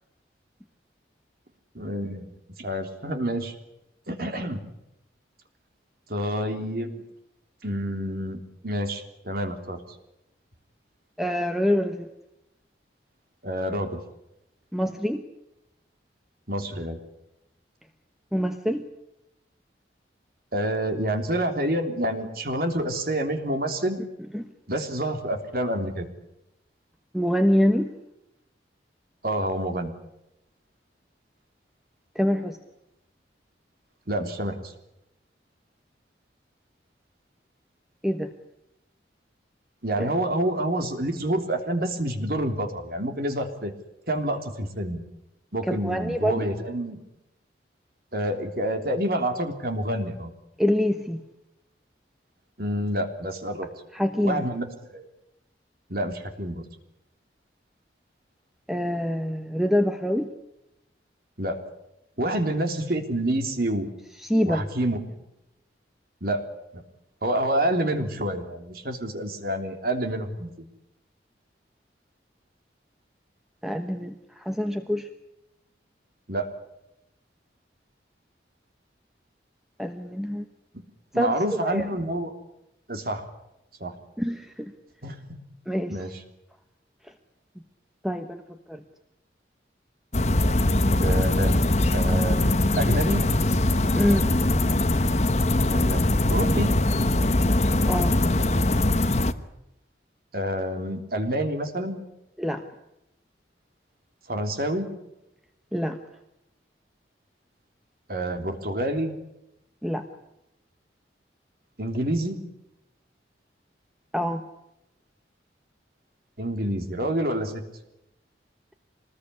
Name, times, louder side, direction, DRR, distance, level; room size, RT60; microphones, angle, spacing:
voice 1, 1.7-2.3 2.6-3.5 4.1-4.6 6.1-7.0 7.6-9.8 13.4-14.0 16.5-17.0 20.5-24.0 24.7-26.1 29.2-29.9 34.1-34.7 39.8-43.7 44.1-45.0 45.5-47.0 48.1-50.3 52.6-53.7 54.2-55.0 55.9-56.6 61.4-61.6 62.2-63.9 64.4-65.2 66.2-66.4 67.2-70.5 76.3-76.5 80.7-80.8 81.1-82.3 82.9-83.2 83.8-83.9 85.0-85.4 85.9-86.2 91.0-91.6 91.9-93.2 95.7-96.0 96.3-96.7 100.3-102.0 104.3-104.9 108.1-109.2 111.8-112.4 116.4-117.6, right 1 dB, 55° right, 6 dB, 3.4 m, -28 dB
voice 2, 11.2-12.1 14.7-15.2 18.3-18.9 24.3-24.5 27.1-27.9 32.1-32.6 38.0-38.3 40.0-40.1 45.6-46.5 50.6-51.2 53.9-54.4 58.7-60.3 64.2-64.7 73.6-75.1 79.8-80.5 81.1-81.9 84.2-84.7 85.7-86.0 87.0-87.1 88.0-88.8 93.9-94.4 97.9-98.2 102.4-102.6 105.7-106.0 109.8-110.0 114.1-114.4, equal, ahead, 6 dB, 1.1 m, -25 dB
sound 1, 90.1-99.3, left 1 dB, 35° left, 1.1 m, -22 dB
25.5 x 20.5 x 9.8 m, 0.88 s
head